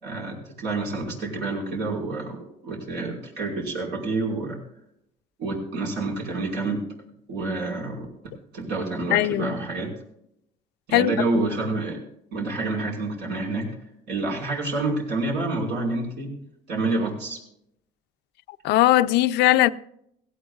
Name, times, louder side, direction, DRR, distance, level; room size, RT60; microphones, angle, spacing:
voice 1, 0.0-2.4 2.6-4.6 5.4-6.8 7.3-8.1 8.5-9.9 10.9-12.0 12.3-13.7 14.1-16.3 16.7-17.4, right 2 dB, 80° right, 5.1 m, -28 dB
voice 2, 9.1-9.6 10.9-11.5 18.6-19.7, left 15 dB, 85° left, 0.5 m, -20 dB
17.5 x 16.0 x 2.4 m
cardioid pair, 110°, 17 cm